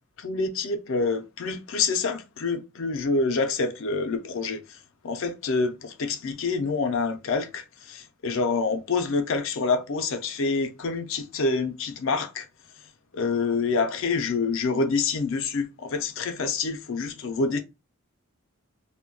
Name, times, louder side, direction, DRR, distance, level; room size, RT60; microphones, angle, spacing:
voice 1, 0.2-4.8 5.0-12.5 13.1-17.6, left 4 dB, 65° left, 0.5 m, -27 dB
2.2 x 2.1 x 3.6 m
head